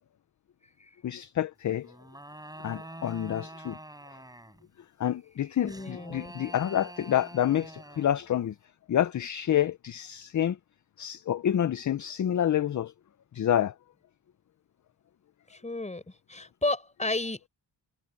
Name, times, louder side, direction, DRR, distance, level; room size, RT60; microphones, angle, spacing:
voice 1, 1.0-1.9 2.6-3.8 5.0-8.5 8.9-10.6 11.0-12.9 13.3-13.7, left 10 dB, 45° left, 0.5 m, -28 dB
sound 1, 1.8-4.7 5.7-8.3, right 1 dB, 10° right, 7.8 m, -46 dB
voice 2, 5.4-6.3 15.5-17.5, left 2 dB, 15° left, 5.0 m, -33 dB
wide cardioid pair, 140°, 44 cm